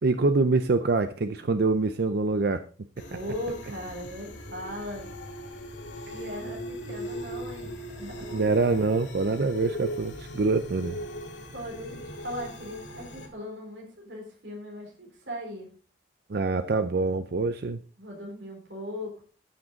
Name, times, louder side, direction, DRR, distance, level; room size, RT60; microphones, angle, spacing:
voice 1, 0.0-2.6 8.3-11.0 16.3-17.8, right 3 dB, 60° right, 10 dB, 0.6 m, -25 dB
sound 1, 3.0-13.3, equal, 85° left, 2.2 m, -39 dB
voice 2, 3.1-5.1 6.1-8.5 11.5-15.7 18.0-19.2, left 1 dB, 90° right, -1 dB, 3.8 m, -38 dB
13.5 x 6.1 x 3.9 m, 0.37 s
head